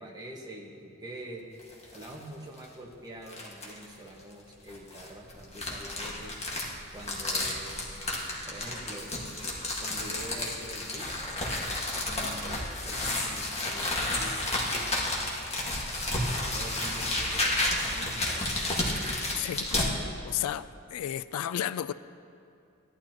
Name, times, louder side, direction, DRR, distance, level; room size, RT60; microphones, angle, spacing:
voice 1, 0.0-1.5 1.9-6.4 6.9-8.0 8.4-9.1 9.8-11.2 12.0-14.9 16.1-18.5, right 1 dB, 20° right, -2 dB, 1.4 m, -45 dB
sound 1, 1.6-2.1 2.6-2.7 3.3-3.8 4.7-19.9, left 1 dB, 30° left, 1.7 m, -31 dB
voice 2, 19.4-19.8 20.2-21.9, left 11 dB, 85° left, 15 dB, 0.3 m, -32 dB
17.0 x 11.5 x 2.9 m, 2.6 s
head